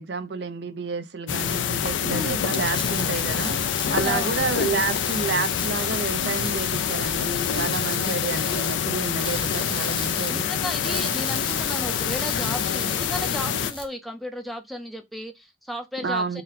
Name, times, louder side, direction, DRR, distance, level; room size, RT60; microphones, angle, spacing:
voice 1, 0.0-3.6 3.9-10.5 16.0-16.4, right 4 dB, 65° right, 0.6 m, -30 dB
sound 1, 1.3-13.7, left 8 dB, 80° left, 0.4 m, -26 dB
voice 2, 2.0-2.4 3.8-4.3 10.3-16.4, equal, ahead, 0.5 m, -34 dB
sound 2, 2.5-13.8, left 3 dB, 25° left, 0.8 m, -35 dB
sound 3, 2.9-13.9, left 1 dB, 60° left, 1.2 m, -49 dB
3.9 x 2.1 x 4.0 m
head